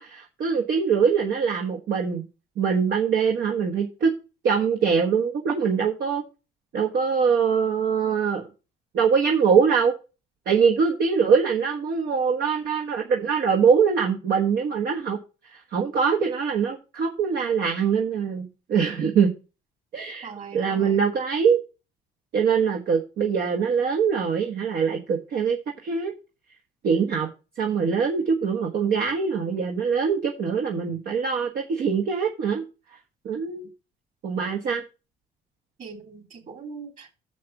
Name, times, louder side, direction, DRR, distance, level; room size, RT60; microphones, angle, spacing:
voice 1, 0.0-2.2 2.6-4.1 4.4-6.2 6.7-8.5 8.9-9.9 10.5-15.2 15.5-19.3 19.9-20.3 20.5-21.6 22.3-25.6 25.8-26.1 26.8-27.3 27.6-32.6 33.2-33.7 34.2-34.8, right 6 dB, 65° right, 1.3 m, -23 dB
voice 2, 20.2-21.0 35.8-37.2, right 5 dB, 50° right, 3.3 m, -41 dB
7.1 x 6.0 x 5.9 m
cardioid pair, 110°, 17 cm